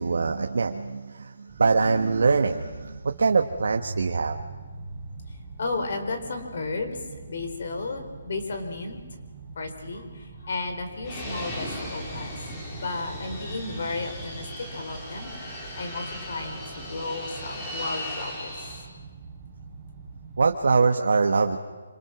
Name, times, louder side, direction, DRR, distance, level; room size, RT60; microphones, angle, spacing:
voice 1, 0.0-4.8 20.4-21.6, right 4 dB, 65° right, 5 dB, 1.5 m, -23 dB
sound 1, 1.5-20.6, right 4 dB, 15° right, 5.3 m, -45 dB
voice 2, 5.6-7.0 7.3-9.0 9.6-12.4 12.8-14.5 14.7-15.3 15.8-18.6, left 3 dB, 50° left, 6 dB, 4.7 m, -33 dB
Fixed-wing aircraft airplane, 11.0-18.9, left 1 dB, 15° left, 4.2 m, -37 dB
27.0 x 26.5 x 6.2 m, 1.5 s
hypercardioid pair, 175°, 0 cm